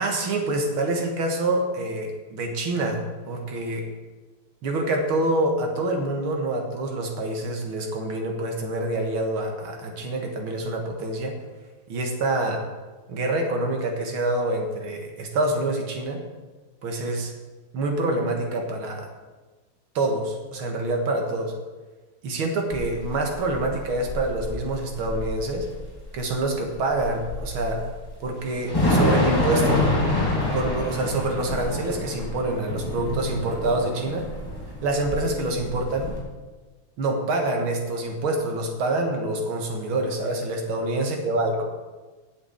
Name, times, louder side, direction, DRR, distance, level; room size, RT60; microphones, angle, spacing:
voice 1, 0.0-3.9 4.6-11.4 11.9-12.6 13.1-16.2 16.8-17.3 17.7-19.1 20.0-21.5 22.2-25.7 26.1-27.8 28.2-29.9 30.5-34.3 34.8-36.1 37.0-41.6, right 2 dB, 70° right, 3 dB, 2.4 m, -26 dB
Thunder / Rain, 22.7-36.2, left 1 dB, 10° left, 2.5 m, -27 dB
8.6 x 7.1 x 7.9 m, 1.3 s
omnidirectional pair, 2.4 m